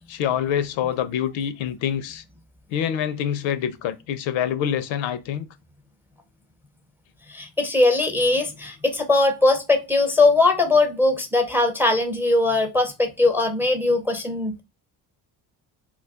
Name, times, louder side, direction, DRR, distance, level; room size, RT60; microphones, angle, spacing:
voice 1, 0.1-2.2 2.7-5.5, left 9 dB, 70° left, 0.5 m, -26 dB
voice 2, 7.3-14.6, left 2 dB, 5° right, 0.4 m, -20 dB
2.3 x 2.3 x 3.4 m
supercardioid pair, 65°, 48 cm